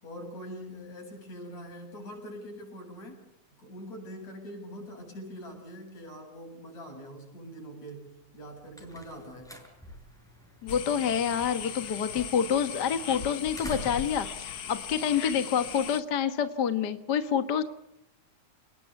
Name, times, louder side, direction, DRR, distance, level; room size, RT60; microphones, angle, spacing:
voice 1, 0.0-3.2 3.6-9.5, equal, 65° left, 3 dB, 9.1 m, -43 dB
sound 1, 8.3-15.7, equal, ahead, 6.1 m, -48 dB
voice 2, 10.6-17.6, left 8 dB, 45° left, 10 dB, 1.6 m, -28 dB
sound 2, 10.7-16.0, left 8 dB, 90° left, 0.8 m, -38 dB
29.5 x 19.5 x 8.2 m, 0.80 s
omnidirectional pair, 3.4 m